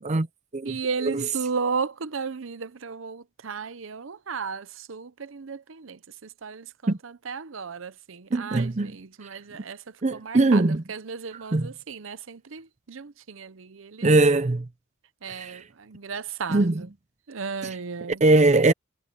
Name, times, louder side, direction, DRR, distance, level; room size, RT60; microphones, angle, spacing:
voice 1, 0.6-10.6 10.9-14.1 15.2-16.9 17.3-18.2, right 5 dB, 70° right, 0.7 m, -34 dB
voice 2, 8.3-9.0 10.0-10.8 11.5-11.7 14.0-14.7 15.3-15.6 16.5-16.8 18.2-18.7, right 2 dB, 35° right, 0.6 m, -21 dB
head